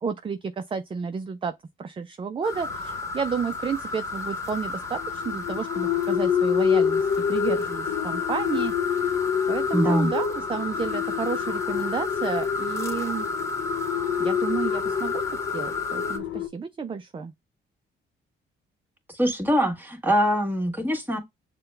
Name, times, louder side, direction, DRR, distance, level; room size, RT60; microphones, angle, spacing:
voice 1, 0.0-9.1 9.5-13.3 14.2-17.3, right 5 dB, 25° right, 0.4 m, -31 dB
sound 1, 2.4-16.2, left 3 dB, 15° left, 1.2 m, -32 dB
sound 2, 2.5-16.5, left 7 dB, 65° left, 0.9 m, -28 dB
voice 2, 9.7-10.1 19.1-21.2, equal, 10° right, 1.6 m, -23 dB
6.6 x 2.2 x 3.3 m
cardioid pair, 90°, 20 cm